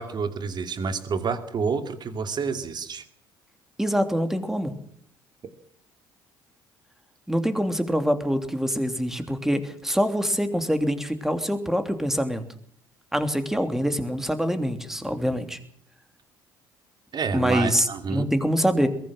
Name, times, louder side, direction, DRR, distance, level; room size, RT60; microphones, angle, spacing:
voice 1, 0.0-3.0 17.1-18.3, right 5 dB, 40° right, 9 dB, 2.6 m, -28 dB
voice 2, 3.8-4.7 7.3-12.4 13.1-15.6 17.3-18.9, equal, 5° right, 8 dB, 3.1 m, -25 dB
22.0 x 16.0 x 7.5 m, 0.63 s
hypercardioid pair, 55°, 11 cm